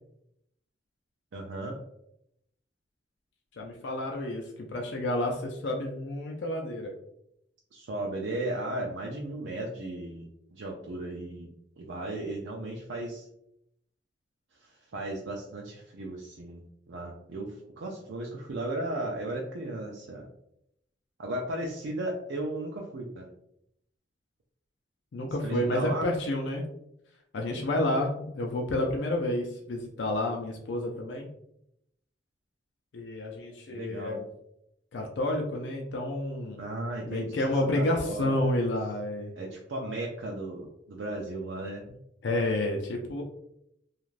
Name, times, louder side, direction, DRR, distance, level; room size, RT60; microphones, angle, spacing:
voice 1, 1.3-1.8 7.7-10.3 10.5-11.5 11.8-13.3 14.6-16.6 16.9-20.3 21.2-23.3 25.4-26.1 33.7-34.2 36.6-37.4 37.7-38.4 39.4-41.8, right 1 dB, 85° right, -1 dB, 0.4 m, -35 dB
voice 2, 3.5-6.9 25.1-26.6 27.3-31.3 32.9-34.3 34.9-36.6 37.0-39.3 42.2-43.2, left 1 dB, 80° left, 1 dB, 0.5 m, -30 dB
3.1 x 2.4 x 2.4 m, 0.77 s
head